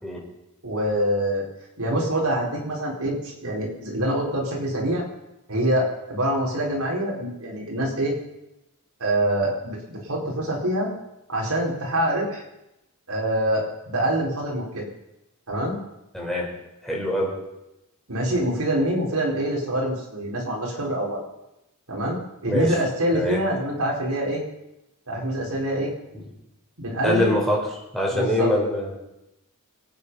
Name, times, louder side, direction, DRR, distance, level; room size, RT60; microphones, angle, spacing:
voice 1, 0.6-1.4 1.8-5.0 5.5-8.1 9.0-10.9 11.3-12.4 13.1-14.9 15.5-15.8 18.1-21.2 21.9-22.2 22.4-24.4 25.1-25.9 26.8-27.3 28.1-28.5, right 1 dB, 80° right, -3 dB, 4.7 m, -25 dB
voice 2, 16.1-16.5 16.8-17.4 22.5-22.8 23.1-23.4 26.1-26.3 27.0-29.0, left 1 dB, ahead, -3 dB, 4.6 m, -24 dB
25.5 x 8.7 x 5.6 m, 0.91 s
head